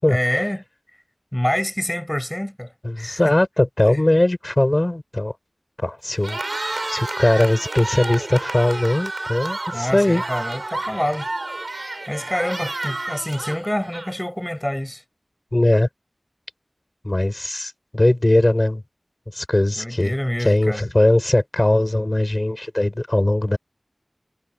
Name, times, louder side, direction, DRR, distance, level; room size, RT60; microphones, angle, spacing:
voice 1, 0.1-0.6 1.3-2.7 3.0-3.3 3.9-4.0 9.7-11.3 12.1-15.0 19.8-20.8, equal, 15° left, 6.8 m, -26 dB
voice 2, 2.8-5.3 5.8-6.4 6.9-10.2 15.5-15.9 17.0-18.8 19.3-20.1 20.4-23.6, left 1 dB, 40° left, 7.7 m, -19 dB
Cheering, 6.1-14.4, right 2 dB, 65° right, 7.2 m, -30 dB
wide cardioid pair, 40°, 0 cm